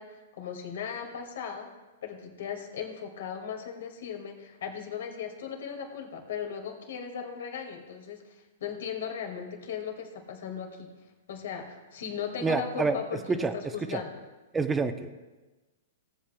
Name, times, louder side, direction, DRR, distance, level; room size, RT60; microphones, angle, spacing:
voice 1, 0.0-1.7 2.0-10.9 11.3-14.2, left 7 dB, 70° left, 3 dB, 2.1 m, -37 dB
voice 2, 12.4-13.0 13.3-13.5 13.9-14.0 14.5-15.1, right 4 dB, 15° right, 8 dB, 0.7 m, -27 dB
17.5 x 8.2 x 2.3 m, 1.2 s
hypercardioid pair, 120°, 0 cm